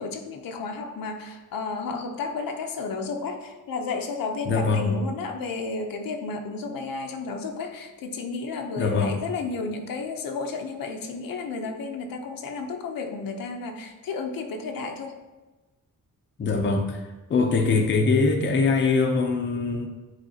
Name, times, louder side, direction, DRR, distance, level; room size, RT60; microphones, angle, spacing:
voice 1, 0.0-15.2, left 4 dB, 75° left, 4 dB, 0.8 m, -32 dB
voice 2, 4.5-4.8 8.8-9.1 16.4-17.0 17.3-19.9, left 4 dB, 35° left, 3 dB, 0.6 m, -22 dB
9.0 x 4.2 x 2.8 m, 1.2 s
wide cardioid pair, 160°, 35 cm